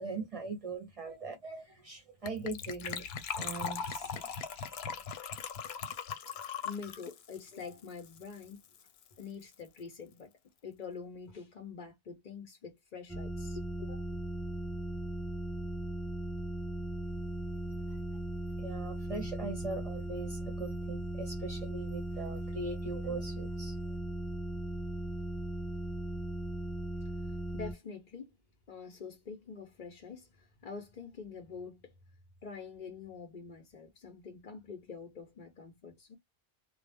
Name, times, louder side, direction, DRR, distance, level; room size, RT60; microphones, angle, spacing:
voice 1, 0.0-3.1 3.4-4.8 18.6-23.8, right 3 dB, 40° right, 0.7 m, -41 dB
Gurgling / Trickle dribble / Fill (with liquid), 2.3-8.5 8.7-8.8 9.0-9.2 9.5-9.6, left 6 dB, 80° left, 0.8 m, -39 dB
voice 2, 6.6-8.6 9.2-10.3 10.6-14.2 27.5-28.3 28.7-31.9 32.4-36.2, left 5 dB, 50° left, 0.8 m, -46 dB
sound 1, 13.1-27.7, right 1 dB, ahead, 0.4 m, -38 dB
2.4 x 2.0 x 3.3 m
omnidirectional pair, 1.0 m